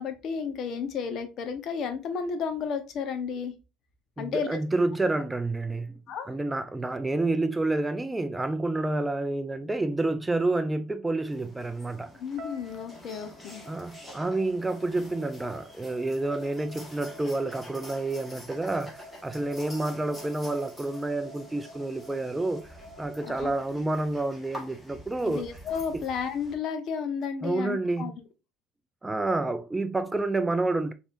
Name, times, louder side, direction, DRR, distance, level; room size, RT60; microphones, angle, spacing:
voice 1, 0.0-3.5 4.2-4.5 6.1-6.3 12.2-13.6 23.2-23.5 25.3-28.1, left 6 dB, 55° left, 0.9 m, -32 dB
voice 2, 4.2-6.0 6.3-12.1 13.7-25.4 25.9-26.0 27.4-28.2 29.0-30.9, right 2 dB, 10° right, 0.4 m, -29 dB
sound 1, 11.2-26.5, left 1 dB, 10° left, 1.5 m, -48 dB
sound 2, 12.4-24.5, equal, 55° right, 1.0 m, -50 dB
4.2 x 3.3 x 2.5 m
supercardioid pair, 100°, 0 cm